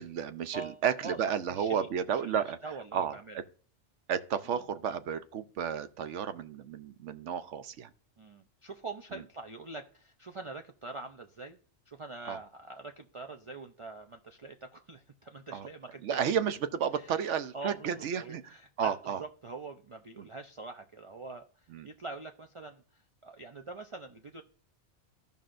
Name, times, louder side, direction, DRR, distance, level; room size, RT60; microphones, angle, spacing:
voice 1, 0.0-2.6 2.9-3.2 4.1-7.9 12.3-12.4 15.5-15.7 16.0-18.4 18.8-19.2 20.2-20.3 21.7-21.9, right 8 dB, 85° right, 1.0 m, -32 dB
voice 2, 0.5-1.2 1.5-3.4 8.2-11.6 11.9-16.2 16.9-17.3 17.5-24.4, right 3 dB, 45° right, 0.4 m, -44 dB
14.5 x 5.3 x 2.5 m
omnidirectional pair, 1.2 m